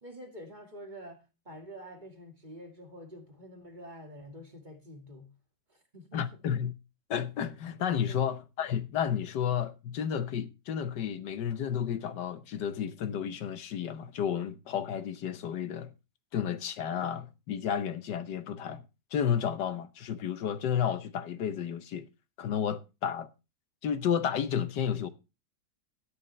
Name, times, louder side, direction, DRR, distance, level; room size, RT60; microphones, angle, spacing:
voice 1, 0.0-5.3 5.7-6.6 8.1-8.3, equal, 25° right, 2.1 m, -47 dB
voice 2, 6.1-6.7 7.1-15.9 16.3-18.8 19.1-22.1 22.4-23.3 23.8-25.1, left 8 dB, 75° left, 1.5 m, -32 dB
13.0 x 9.9 x 3.1 m
omnidirectional pair, 1.9 m